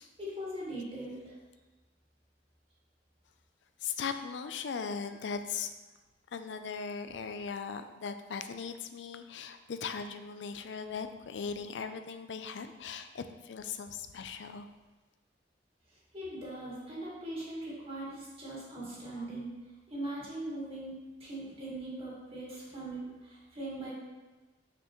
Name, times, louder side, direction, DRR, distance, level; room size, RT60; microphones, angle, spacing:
voice 1, 0.2-1.3 16.1-19.5 19.9-20.9 21.2-23.9, right 1 dB, 35° right, -6 dB, 1.9 m, -40 dB
voice 2, 3.8-5.7 6.3-14.7, left 6 dB, 80° left, 9 dB, 0.4 m, -38 dB
6.1 x 5.5 x 3.0 m, 1.2 s
head